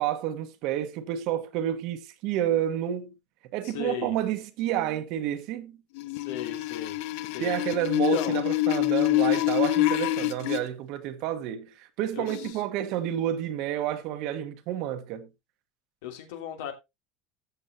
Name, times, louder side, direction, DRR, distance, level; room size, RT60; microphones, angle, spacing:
voice 1, 0.0-3.1 3.5-5.8 7.4-15.3, right 11 dB, 55° right, 1.4 m, -30 dB
voice 2, 3.6-4.2 6.1-7.0 7.3-7.5 7.9-8.4 12.1-12.6 16.0-16.7, left 9 dB, 90° left, 3.0 m, -37 dB
sound 1, 6.0-10.6 12.3-12.5, left 18 dB, 65° left, 0.8 m, -26 dB
14.0 x 7.4 x 2.8 m
cardioid pair, 160°, 0 cm